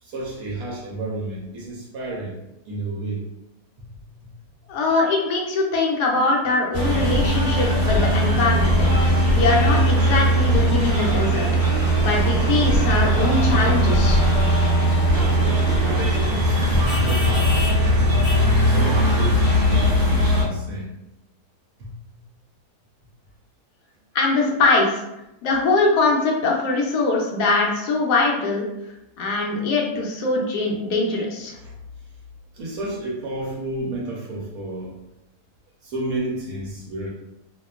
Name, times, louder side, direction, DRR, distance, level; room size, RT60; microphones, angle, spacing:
voice 1, 0.0-2.4 2.7-3.2 3.8-4.3 15.1-18.1 18.6-20.9 21.8-21.9 31.6-31.7 32.5-34.9 35.8-37.1, right 2 dB, 70° right, -3 dB, 1.0 m, -32 dB
voice 2, 4.7-8.7 9.3-11.5 12.0-14.3 24.1-25.0 25.4-28.6 29.2-31.6, left 3 dB, 75° left, -1 dB, 1.1 m, -22 dB
sound 1, 6.7-20.4, equal, 30° right, 1.2 m, -19 dB
2.8 x 2.1 x 2.3 m, 0.89 s
omnidirectional pair, 1.8 m